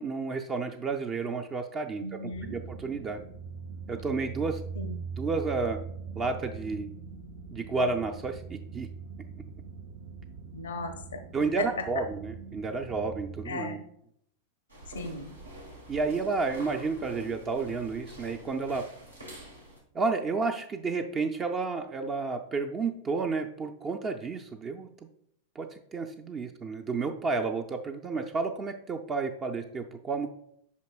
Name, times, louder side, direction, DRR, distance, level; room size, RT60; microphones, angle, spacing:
voice 1, 0.0-3.2 3.9-4.6 5.2-5.8 6.2-6.9 7.5-8.9 11.3-13.8 15.9-18.9 19.9-24.9 25.6-30.3, right 4 dB, 25° right, 5 dB, 0.5 m, -31 dB
voice 2, 2.0-2.6 4.8-5.0 10.5-11.2 11.6-11.7 13.4-13.8 14.9-15.4, left 2 dB, 75° left, 7 dB, 0.7 m, -37 dB
sound 1, 2.3-13.5, right 5 dB, 55° right, 0.8 m, -42 dB
sound 2, 14.7-19.8, equal, 80° right, 1.5 m, -46 dB
8.2 x 5.9 x 2.3 m, 0.70 s
figure-of-eight pair, 90°, 0 cm